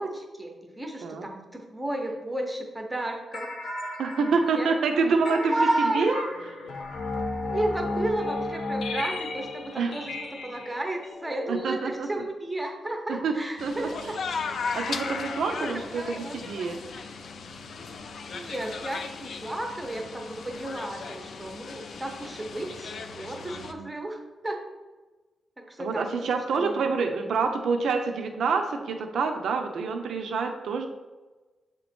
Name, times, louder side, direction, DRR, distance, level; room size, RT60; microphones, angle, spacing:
voice 1, 0.0-3.5 4.5-4.7 5.0-6.1 7.5-14.2 15.5-16.4 18.3-24.6 25.6-26.3 26.5-26.9 27.2-27.3, right 1 dB, 10° right, 2 dB, 0.7 m, -33 dB
sound 1, 3.3-12.2, left 2 dB, 80° left, 0.8 m, -34 dB
voice 2, 4.0-6.3 9.8-10.0 11.5-12.2 13.2-13.3 13.6-14.2 14.7-16.8 23.5-23.9 25.8-30.9, right 4 dB, 80° right, 5 dB, 0.7 m, -27 dB
sound 2, 13.6-23.7, left 5 dB, 55° left, 0.4 m, -37 dB
7.7 x 3.0 x 4.3 m, 1.2 s
wide cardioid pair, 180°, 0 cm